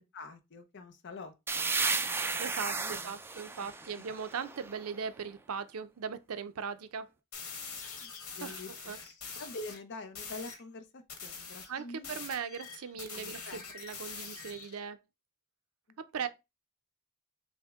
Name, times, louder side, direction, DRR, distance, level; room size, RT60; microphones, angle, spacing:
voice 1, 0.0-2.1 2.7-3.1 3.6-4.0 7.8-8.9 9.3-12.2 13.1-13.6 14.1-14.3 16.1-16.3, left 2 dB, 55° left, 0.6 m, -47 dB
sound 1, 1.5-5.1, right 4 dB, 10° right, 0.3 m, -34 dB
voice 2, 2.4-7.1 8.4-8.6 8.8-9.0 11.7-15.0 16.0-16.3, right 6 dB, 80° right, 0.5 m, -39 dB
sound 2, 7.3-9.8 10.1-10.6 11.1-14.8, left 5 dB, 75° left, 1.2 m, -44 dB
6.2 x 2.1 x 3.5 m
head